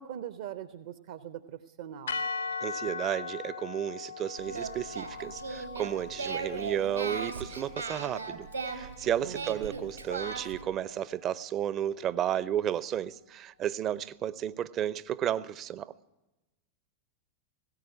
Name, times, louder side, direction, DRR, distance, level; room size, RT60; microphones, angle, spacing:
voice 1, 0.0-2.2 9.2-9.9, right 10 dB, 55° right, 0.9 m, -42 dB
sound 1, 2.1-10.3, left 5 dB, 65° left, 0.7 m, -40 dB
voice 2, 2.6-15.9, right 10 dB, 30° right, 0.7 m, -33 dB
Singing, 4.4-10.6, right 4 dB, 80° right, 3.2 m, -38 dB
18.5 x 17.0 x 9.7 m
figure-of-eight pair, 90°, 0 cm